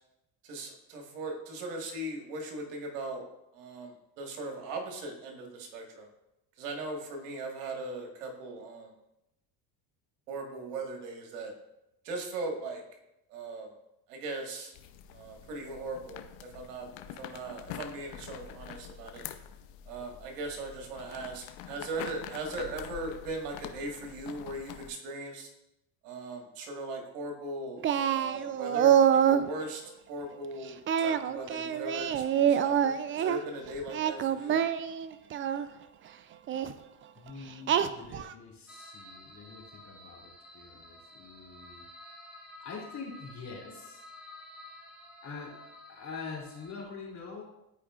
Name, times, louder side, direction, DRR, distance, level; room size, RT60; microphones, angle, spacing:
voice 1, 0.4-3.2 3.5-6.1 6.6-8.9 10.3-11.5 12.0-12.8 13.3-13.7 14.1-14.7 15.1-16.9 17.2-19.3 19.9-25.5 26.0-27.8 28.1-29.8 30.1-34.6, right 2 dB, 80° right, 2 dB, 1.6 m, -39 dB
sound 1, 14.7-24.9, left 10 dB, 70° left, 0.7 m, -46 dB
Singing, 27.8-29.5 30.9-33.4 33.9-35.7 36.5-36.7 37.7-38.3, right 9 dB, 30° right, 0.3 m, -26 dB
voice 2, 37.2-41.8 42.6-44.1 45.2-45.6 45.9-47.4, left 4 dB, 35° left, -2 dB, 2.7 m, -44 dB
sound 2, 38.7-46.8, left 1 dB, ahead, 1.5 m, -51 dB
11.5 x 4.9 x 2.4 m, 0.87 s
supercardioid pair, 85°, 47 cm